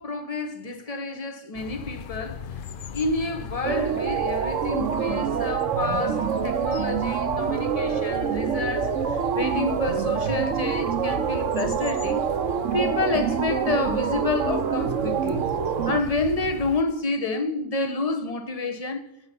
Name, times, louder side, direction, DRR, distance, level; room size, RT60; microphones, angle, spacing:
voice 1, 0.0-2.4 2.9-12.2 12.7-15.5 15.9-19.0, left 3 dB, 30° left, 1.2 m, -29 dB
sound 1, 1.5-16.8, left 7 dB, 55° left, 0.7 m, -37 dB
sound 2, 3.6-16.0, right 8 dB, 75° right, 1.1 m, -26 dB
9.9 x 7.3 x 8.4 m
omnidirectional pair, 1.3 m